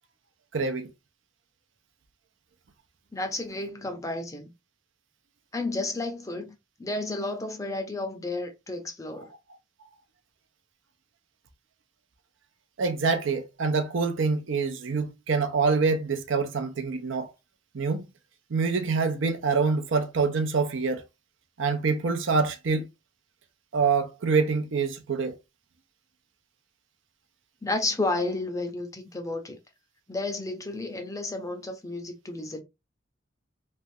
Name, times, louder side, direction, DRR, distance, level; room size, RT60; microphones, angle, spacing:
voice 1, 0.5-0.9 12.8-17.3 17.7-18.0 18.5-21.0 21.6-22.9 23.7-25.3, right 4 dB, 70° right, 0.6 m, -26 dB
voice 2, 3.1-4.5 5.5-6.5 6.8-9.3 27.6-29.6 30.1-32.6, left 2 dB, 15° left, 0.6 m, -32 dB
3.3 x 2.4 x 2.6 m
head